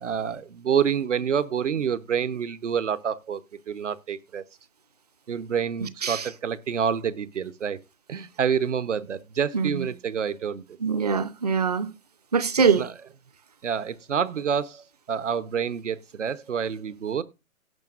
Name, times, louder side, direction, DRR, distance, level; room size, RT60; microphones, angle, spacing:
voice 1, 0.0-3.4 3.7-4.4 5.3-7.8 8.1-10.6 12.8-12.9 13.6-17.2, right 7 dB, 60° right, 1.0 m, -27 dB
voice 2, 5.8-6.2 9.5-9.9 10.8-11.9 12.3-12.9, right 6 dB, 30° right, 0.6 m, -23 dB
17.0 x 6.8 x 2.5 m
hypercardioid pair, 155°, 42 cm